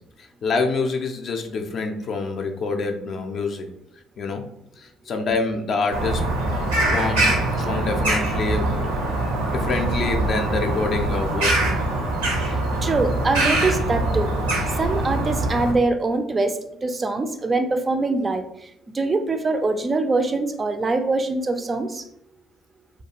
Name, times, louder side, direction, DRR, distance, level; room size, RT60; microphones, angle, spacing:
voice 1, 0.4-3.7 4.2-4.5 4.8-6.3 6.8-8.9 9.5-11.7, left 3 dB, 50° left, 4 dB, 0.4 m, -26 dB
Bird vocalization bird call bird song, 5.9-15.7, right 2 dB, 80° right, 0.6 m, -23 dB
voice 2, 12.8-14.3 14.8-18.4 18.9-22.0, right 3 dB, 30° right, 7 dB, 0.3 m, -23 dB
2.3 x 2.3 x 2.8 m, 0.73 s
hypercardioid pair, 50°, 0 cm